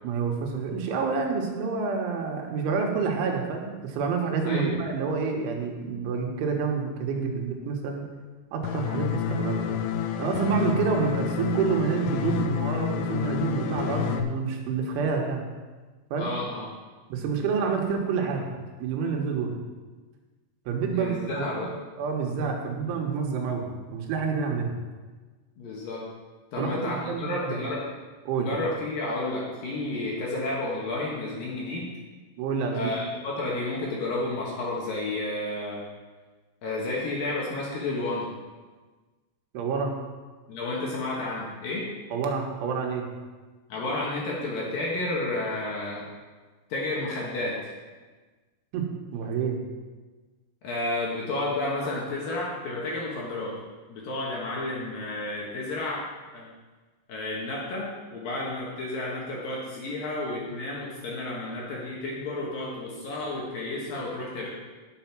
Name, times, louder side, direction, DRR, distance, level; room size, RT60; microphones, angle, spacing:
voice 1, 0.0-8.0 8.5-9.7 10.2-15.5 16.1-16.3 17.1-18.5 18.8-19.6 20.7-21.7 22.0-24.7 26.6-27.6 28.3-28.5 32.4-32.9 39.5-39.9 42.1-43.1 48.7-48.9 49.1-49.6, right 5 dB, 80° right, 1 dB, 3.6 m, -28 dB
voice 2, 4.4-4.8 16.2-16.7 20.9-21.7 25.6-26.0 26.5-27.9 28.4-31.9 32.7-35.8 36.6-38.3 40.5-41.9 43.7-46.1 46.7-47.6 50.6-53.5 53.9-56.1 56.3-56.5 57.1-64.5, left 2 dB, 60° left, -4 dB, 2.6 m, -31 dB
sound 1, 8.6-14.2, left 8 dB, 85° left, 3.1 m, -29 dB
10.0 x 7.1 x 5.9 m, 1.3 s
omnidirectional pair, 5.5 m